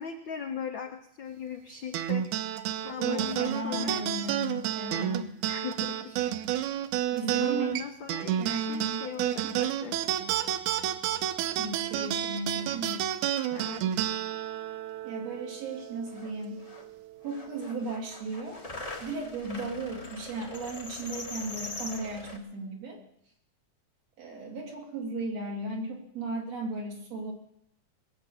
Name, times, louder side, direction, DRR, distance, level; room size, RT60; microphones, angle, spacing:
voice 1, 0.0-2.2 2.8-4.1 5.4-6.1 7.4-10.0 13.5-13.8, left 7 dB, 80° left, 5 dB, 1.0 m, -39 dB
sound 1, 1.9-16.7, right 11 dB, 80° right, 2.1 m, -31 dB
voice 2, 3.0-5.4 6.1-6.2 7.1-7.8 8.4-9.0 9.4-9.6 11.6-13.4 15.0-16.6 17.2-18.6 19.0-23.0 24.2-27.3, right 2 dB, 55° right, 0 dB, 3.9 m, -36 dB
sound 2, 15.8-15.9 16.1-16.9 17.2-22.4, left 2 dB, 35° left, 0.6 m, -42 dB
20.0 x 8.3 x 7.0 m, 0.73 s
omnidirectional pair, 3.5 m